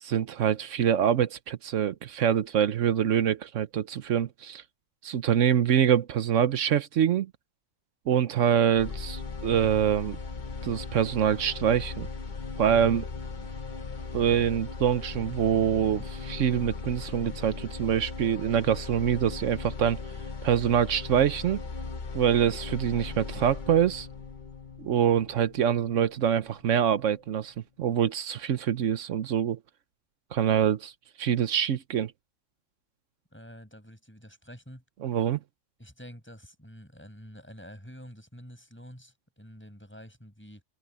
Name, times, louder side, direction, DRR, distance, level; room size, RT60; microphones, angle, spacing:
voice 1, 0.0-4.6 5.0-7.3 8.1-10.2 10.6-12.1 12.6-13.1 14.1-20.0 20.4-21.6 22.1-24.1 24.8-29.6 30.3-30.9 31.2-32.1 35.0-35.4, right 9 dB, 85° right, 1.2 m, -25 dB
sound 1, 8.7-26.7, left 4 dB, 40° left, 1.1 m, -38 dB
voice 2, 33.3-34.8 35.8-40.6, equal, 10° left, 7.0 m, -48 dB
omnidirectional pair, 1.3 m